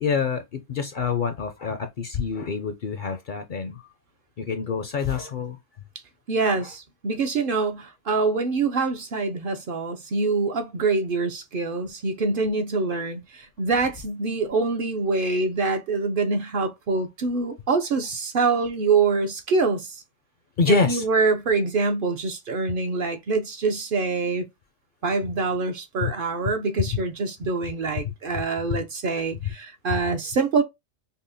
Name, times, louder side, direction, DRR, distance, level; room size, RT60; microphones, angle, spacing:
voice 1, 0.0-3.8 4.4-5.6 15.1-15.4 20.6-21.1 26.0-26.1 26.8-27.0 28.4-28.5 28.7-28.8 29.9-30.0, left 5 dB, 60° left, 0.6 m, -26 dB
voice 2, 6.3-20.0 20.7-24.5 25.0-30.6, right 4 dB, 60° right, 0.7 m, -25 dB
5.4 x 2.0 x 2.5 m
omnidirectional pair, 1.2 m